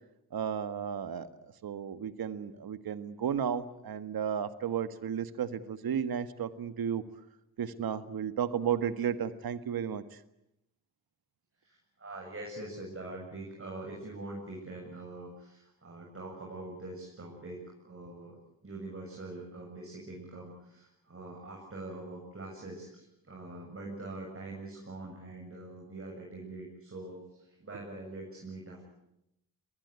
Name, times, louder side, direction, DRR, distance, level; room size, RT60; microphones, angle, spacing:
voice 1, 0.3-7.0 7.6-10.2, right 8 dB, 60° right, 12 dB, 1.7 m, -33 dB
voice 2, 11.6-28.8, right 2 dB, 35° right, -1 dB, 7.5 m, -44 dB
22.5 x 19.5 x 9.6 m, 0.84 s
cardioid pair, 65°, 39 cm